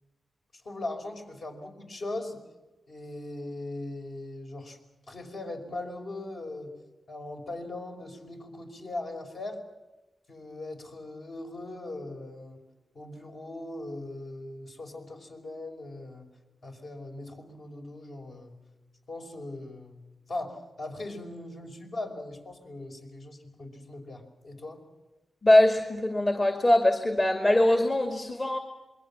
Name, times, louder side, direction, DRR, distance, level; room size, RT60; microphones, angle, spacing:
voice 1, 0.6-2.4 2.9-4.8 5.1-6.7 7.1-9.6 10.3-12.6 12.9-16.3 16.6-18.6 19.1-24.8, left 2 dB, 60° left, 3 dB, 5.4 m, -39 dB
voice 2, 25.4-28.6, left 1 dB, 35° left, 4 dB, 2.4 m, -22 dB
27.5 x 22.0 x 7.3 m, 1.1 s
wide cardioid pair, 90°, 0 cm